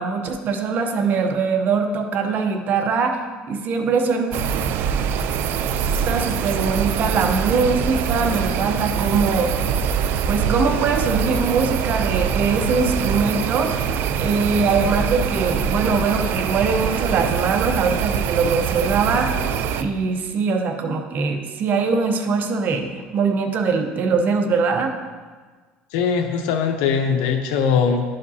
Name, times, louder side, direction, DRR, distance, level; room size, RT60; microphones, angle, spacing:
voice 1, 0.0-3.2 3.5-4.3 6.0-9.5 10.3-13.8 14.2-19.3 19.8-24.9, right 4 dB, 50° right, 5 dB, 0.8 m, -22 dB
sound 1, 4.3-19.8, right 7 dB, 65° right, 0.4 m, -23 dB
voice 2, 25.9-28.0, left 6 dB, 85° left, 5 dB, 0.7 m, -20 dB
11.0 x 5.1 x 2.8 m, 1.4 s
cardioid pair, 115°, 4 cm